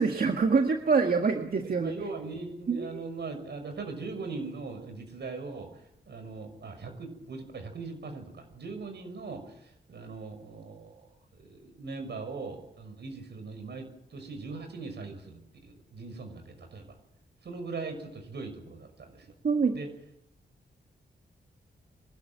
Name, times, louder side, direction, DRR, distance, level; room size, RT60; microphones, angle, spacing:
voice 1, 0.0-1.9 2.7-3.0 19.4-19.8, right 4 dB, 55° right, 4 dB, 1.8 m, -25 dB
voice 2, 1.6-11.1 11.4-17.0 17.4-19.3 19.7-19.9, right 4 dB, 70° right, 6 dB, 6.2 m, -40 dB
24.5 x 13.0 x 9.0 m, 0.81 s
cardioid pair, 65°, 18 cm